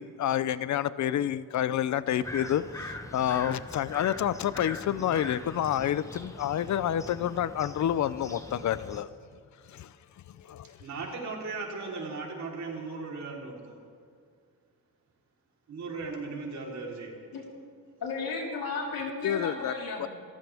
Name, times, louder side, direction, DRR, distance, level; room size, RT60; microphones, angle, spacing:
voice 1, 0.0-9.1 9.7-9.9 10.3-10.8 19.2-19.7 20.0-20.1, left 10 dB, 55° left, 16 dB, 0.6 m, -29 dB
sound 1, 2.2-9.0, left 1 dB, 10° left, 1.0 m, -42 dB
voice 2, 10.8-13.8 15.7-17.2, right 3 dB, 55° right, -2 dB, 3.8 m, -37 dB
voice 3, 18.0-20.1, left 4 dB, 80° left, -2 dB, 4.1 m, -34 dB
28.0 x 14.0 x 3.5 m, 2.2 s
wide cardioid pair, 155°, 34 cm